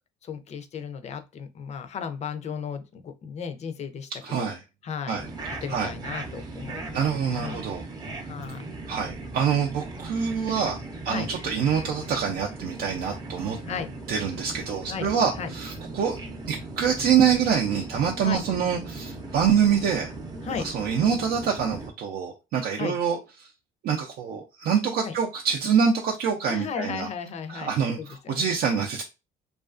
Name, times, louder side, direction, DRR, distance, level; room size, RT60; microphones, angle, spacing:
voice 1, 0.2-4.1 4.4-4.5 4.8-5.2 5.6-7.0 7.3-7.6 8.2-8.7 11.1-11.3 13.6-13.9 14.9-15.1 15.4-15.5 18.2-18.4 20.4-20.6 22.8-22.9 25.0-25.1 26.5-27.7 28.0-28.5, left 6 dB, 40° left, 0.5 m, -35 dB
voice 2, 4.2-4.6 5.1-5.3 5.7-5.9 6.9-7.8 8.9-13.6 14.1-16.2 16.5-20.1 20.6-23.2 23.8-27.1 27.5-29.0, right 7 dB, 70° right, 0.5 m, -25 dB
sound 1, 5.2-21.9, right 2 dB, 25° right, 0.6 m, -38 dB
2.4 x 2.3 x 2.4 m
cardioid pair, 110°, 17 cm